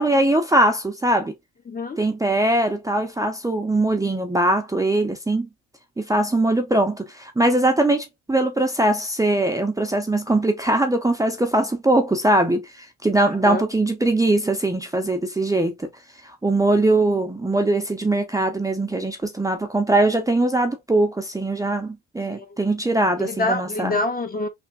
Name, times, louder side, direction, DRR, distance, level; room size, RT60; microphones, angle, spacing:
voice 1, 0.0-1.3 2.0-5.5 6.0-15.9 16.2-23.9, right 2 dB, 10° right, 0.6 m, -21 dB
voice 2, 1.7-2.0 13.4-13.6 22.3-22.6 23.2-24.5, left 2 dB, 25° left, 0.8 m, -26 dB
3.4 x 2.4 x 2.3 m
supercardioid pair, 75°, 32 cm